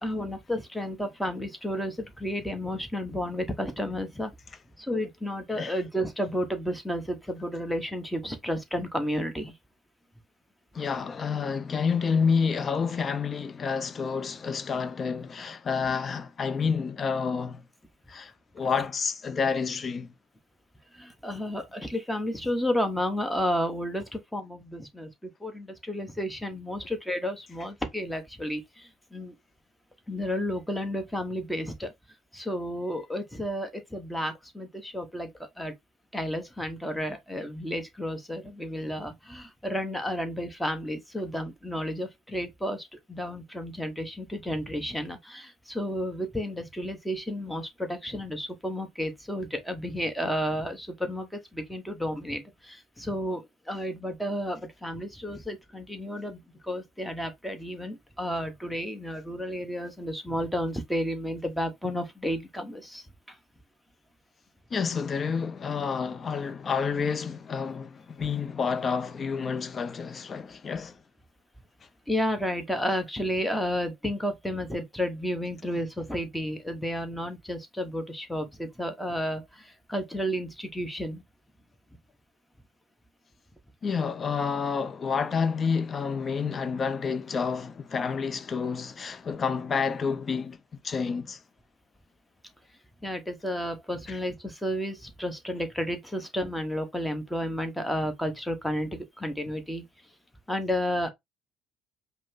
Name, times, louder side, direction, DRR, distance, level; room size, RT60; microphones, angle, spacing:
voice 1, 0.0-4.3 4.8-9.5 20.9-29.3 30.1-31.9 32.3-35.7 36.1-53.4 53.7-63.3 72.1-81.2 93.0-99.8 100.5-101.1, equal, 5° left, 1.3 m, -32 dB
voice 2, 10.7-17.6 18.1-20.1 64.7-70.9 83.8-90.6 90.8-91.4 94.1-94.2, left 5 dB, 35° left, 0.7 m, -29 dB
5.1 x 2.2 x 3.8 m
hypercardioid pair, 65°, 0 cm